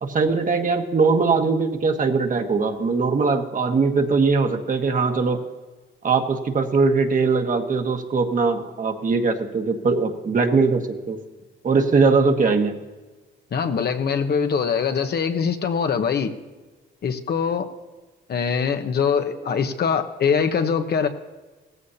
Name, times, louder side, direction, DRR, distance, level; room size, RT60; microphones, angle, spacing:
voice 1, 0.0-5.4 6.0-11.2 11.6-12.7, right 4 dB, 40° right, 4 dB, 1.5 m, -21 dB
voice 2, 13.5-16.3 17.0-17.7 18.3-21.1, left 6 dB, 55° left, 7 dB, 1.1 m, -23 dB
17.0 x 14.5 x 2.8 m, 1.3 s
cardioid pair, 90°, 20 cm